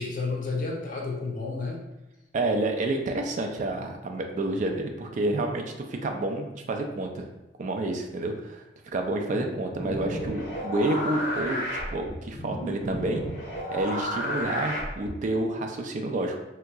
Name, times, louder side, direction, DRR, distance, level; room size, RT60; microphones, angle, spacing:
voice 1, 0.0-1.8 9.3-9.5, left 3 dB, 45° left, -1 dB, 0.6 m, -31 dB
voice 2, 2.3-7.3 7.6-8.6 8.9-11.6 11.9-13.2 13.7-16.4, right 2 dB, 40° right, 4 dB, 0.3 m, -29 dB
sound 1, 9.7-15.3, equal, 85° left, 1.0 m, -32 dB
3.5 x 2.8 x 2.3 m, 1.0 s
head